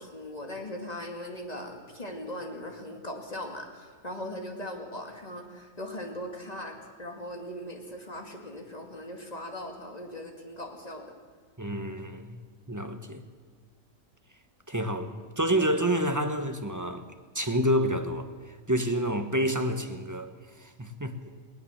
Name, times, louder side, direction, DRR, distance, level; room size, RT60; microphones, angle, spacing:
voice 1, 0.0-11.1, left 1 dB, 30° left, 2.5 m, -39 dB
voice 2, 11.6-12.4 12.7-13.2 14.7-17.1 17.3-20.3 20.6-21.2, equal, 15° right, 1.1 m, -28 dB
20.0 x 18.0 x 7.3 m
omnidirectional pair, 1.4 m